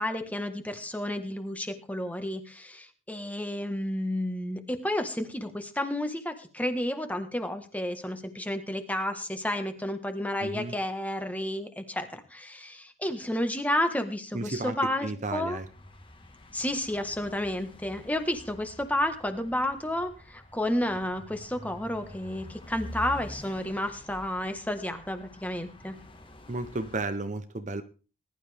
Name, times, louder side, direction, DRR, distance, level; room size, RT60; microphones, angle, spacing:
voice 1, 0.0-15.6 16.5-25.9, left 1 dB, 5° left, 7 dB, 1.5 m, -31 dB
voice 2, 10.4-10.7 14.3-14.8 15.0-15.6 26.5-27.8, right 2 dB, 35° right, 10 dB, 0.8 m, -33 dB
sound 1, 15.4-27.0, left 1 dB, 25° left, 1.7 m, -47 dB
20.0 x 12.0 x 3.5 m, 0.36 s
head